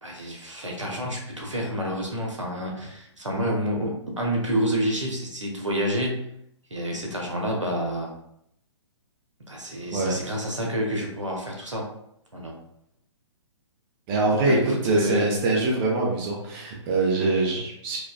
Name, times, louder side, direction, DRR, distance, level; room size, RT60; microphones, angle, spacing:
voice 1, 0.0-6.3 6.7-8.1 9.5-11.9 12.3-12.6 14.4-15.4 17.5-17.6, equal, 85° right, -1 dB, 1.0 m, -28 dB
voice 2, 14.1-14.6 14.8-18.0, right 3 dB, 25° right, -1 dB, 0.7 m, -24 dB
4.7 x 2.2 x 2.3 m, 0.74 s
figure-of-eight pair, 120°, 15 cm